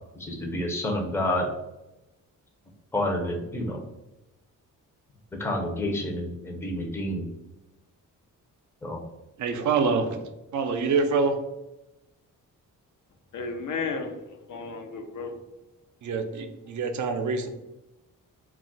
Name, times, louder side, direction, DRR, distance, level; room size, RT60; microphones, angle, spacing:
voice 1, 0.2-1.4 2.9-3.8 5.4-7.3 8.8-9.0, left 1 dB, 10° left, 0.5 m, -29 dB
voice 2, 9.4-10.2 10.5-11.4 16.0-17.5, right 4 dB, 60° right, 0.5 m, -25 dB
voice 3, 13.3-15.4, left 4 dB, 65° left, 0.6 m, -33 dB
2.3 x 2.0 x 3.8 m
cardioid pair, 85°, 33 cm